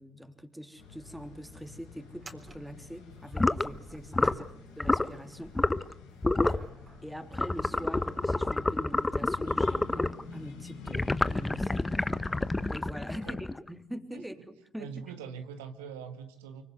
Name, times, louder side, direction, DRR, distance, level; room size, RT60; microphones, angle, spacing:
voice 1, 0.0-4.5 4.8-5.5 7.0-12.3 12.7-14.9, equal, 5° right, 7 dB, 3.3 m, -43 dB
sound 1, 0.7-0.9 1.1-1.2 2.1-4.9 5.2-7.9 8.6-8.7 12.9-13.0 14.3-14.4, right 2 dB, 25° right, 3.9 m, -50 dB
sound 2, 0.8-12.8, left 4 dB, 85° left, 5.2 m, -48 dB
sound 3, 3.3-3.7 4.1-4.4 4.8-5.1 5.5-5.9 6.2-6.6 7.3-10.2 10.9-13.7, left 2 dB, 20° left, 1.0 m, -28 dB
voice 2, 14.8-16.6, right 7 dB, 85° right, 7 dB, 1.7 m, -43 dB
25.0 x 24.0 x 8.1 m, 0.70 s
hypercardioid pair, 50°, 0 cm